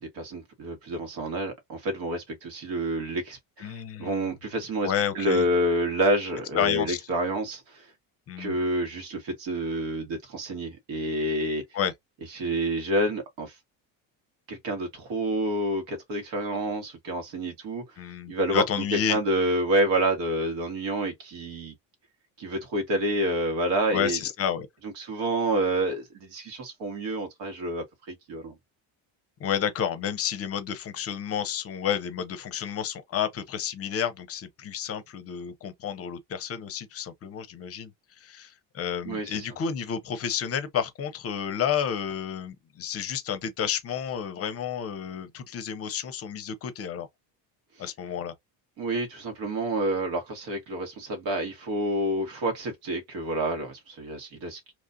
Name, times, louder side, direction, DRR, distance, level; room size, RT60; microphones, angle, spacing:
voice 1, 0.0-7.9 8.4-11.6 12.3-13.6 14.5-17.8 18.3-21.7 22.4-24.2 25.0-28.5 39.1-39.5 48.8-54.6, right 1 dB, 70° right, 1.7 m, -28 dB
voice 2, 3.6-4.1 4.8-5.4 6.5-7.0 8.3-8.6 11.7-11.9 18.0-19.2 23.9-24.7 29.4-37.9 38.2-47.1 47.8-48.3, left 8 dB, 35° left, 0.7 m, -30 dB
2.9 x 2.5 x 2.6 m
cardioid pair, 130°, 41 cm